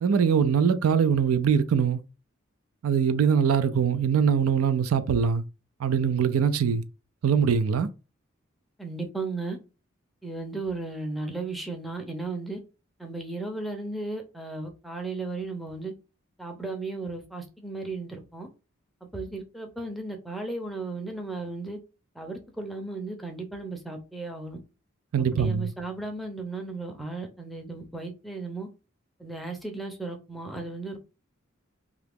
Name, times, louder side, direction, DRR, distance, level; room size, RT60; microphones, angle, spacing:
voice 1, 0.0-2.0 2.8-5.4 5.8-6.8 7.2-7.9 25.1-25.7, right 7 dB, 85° right, 0.4 m, -22 dB
voice 2, 8.8-9.6 10.2-12.6 13.0-15.9 16.4-18.5 19.1-21.8 22.2-24.6 25.3-28.7 29.2-31.0, right 3 dB, ahead, 0.5 m, -35 dB
2.8 x 2.4 x 3.4 m
head